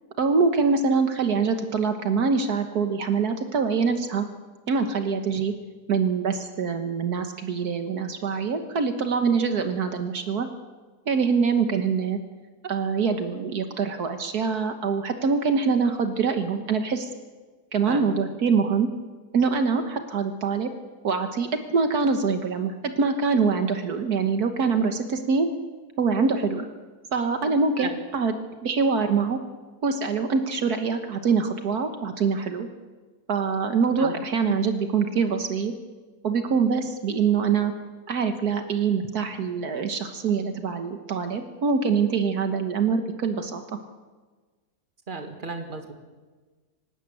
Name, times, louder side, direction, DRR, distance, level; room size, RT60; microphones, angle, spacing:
voice 1, 0.2-4.3 4.7-5.5 5.9-10.5 11.1-12.2 12.6-17.1 17.7-18.9 19.3-20.7 21.0-25.5 26.0-26.7 27.1-28.3 28.6-29.4 29.8-32.7 33.3-35.7 36.2-37.7 38.1-43.6, right 5 dB, 70° right, 7 dB, 1.7 m, -24 dB
voice 2, 17.9-18.2 27.8-27.9 34.0-34.1 45.1-45.9, right 4 dB, 30° right, 5 dB, 2.0 m, -34 dB
24.5 x 12.5 x 9.0 m, 1.3 s
omnidirectional pair, 1.7 m